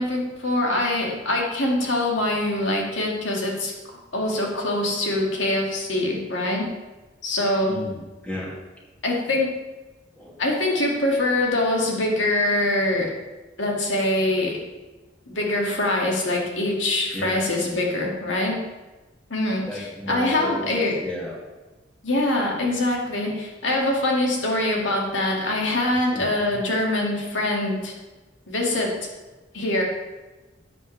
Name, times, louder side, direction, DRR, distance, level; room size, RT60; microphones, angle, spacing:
voice 1, 0.0-6.7 7.2-7.8 9.0-9.6 10.4-13.1 13.6-14.6 15.3-18.6 19.3-21.0 22.0-27.9 28.5-29.0 29.5-29.8, left 1 dB, 75° left, -1 dB, 2.3 m, -24 dB
voice 2, 7.7-8.5 10.2-10.4 11.3-11.4 17.1-17.5 19.6-20.7 21.0-21.4 26.1-26.3, left 1 dB, 5° left, -4 dB, 2.4 m, -33 dB
13.0 x 8.3 x 3.4 m, 1.2 s
head